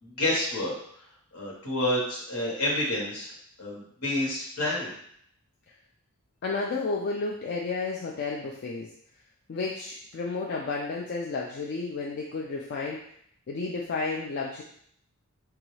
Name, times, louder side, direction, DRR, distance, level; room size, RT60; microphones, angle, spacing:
voice 1, 0.0-0.7 1.3-3.3 3.6-5.0, left 1 dB, 75° left, -3 dB, 1.2 m, -29 dB
voice 2, 6.4-8.9 9.5-13.0 13.5-14.6, left 3 dB, 50° left, -2 dB, 0.4 m, -32 dB
3.9 x 2.3 x 3.1 m, 0.66 s
head